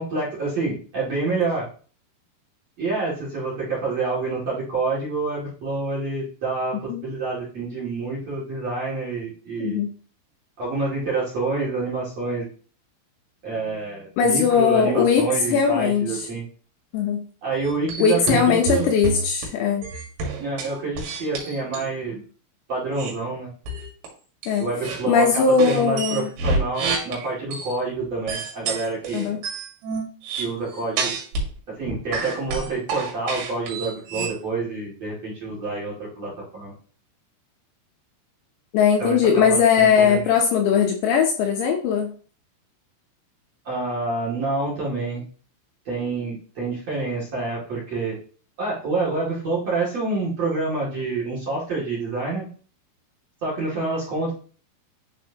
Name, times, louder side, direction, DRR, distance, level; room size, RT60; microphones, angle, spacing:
voice 1, 0.0-1.7 2.8-9.8 10.6-12.5 13.4-16.4 17.4-18.9 20.4-22.2 22.7-23.5 24.6-29.4 30.4-31.1 31.7-36.7 39.0-40.3 43.6-45.2 45.8-48.2 48.6-52.5 53.4-54.3, right 3 dB, 40° right, -7 dB, 2.7 m, -27 dB
voice 2, 14.2-16.3 16.9-17.2 18.0-19.9 24.5-24.7 25.1-26.3 29.1-29.4 38.7-42.1, left 6 dB, 75° left, 2 dB, 2.8 m, -19 dB
sound 1, 17.6-19.5 19.8-21.9 23.0-23.1 23.7-24.1 24.4-25.0 25.6-27.8 28.3-31.5 31.8-34.4, right 3 dB, 80° right, 4.4 m, -29 dB
10.5 x 4.5 x 2.9 m, 0.41 s
omnidirectional pair, 5.7 m